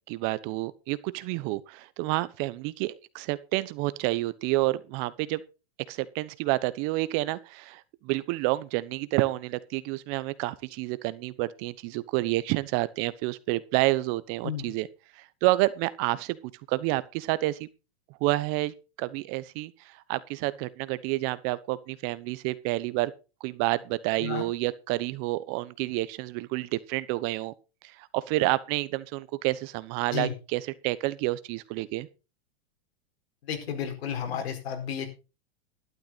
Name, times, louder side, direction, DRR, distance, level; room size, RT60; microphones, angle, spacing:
voice 1, 0.1-5.4 5.9-14.9 15.1-16.4 16.7-17.7 18.2-23.1 23.4-27.5 27.8-32.1, right 19 dB, 40° right, 1.0 m, -29 dB
voice 2, 33.4-35.1, left 8 dB, 80° left, 4.7 m, -32 dB
12.0 x 11.5 x 4.1 m
supercardioid pair, 140°, 31 cm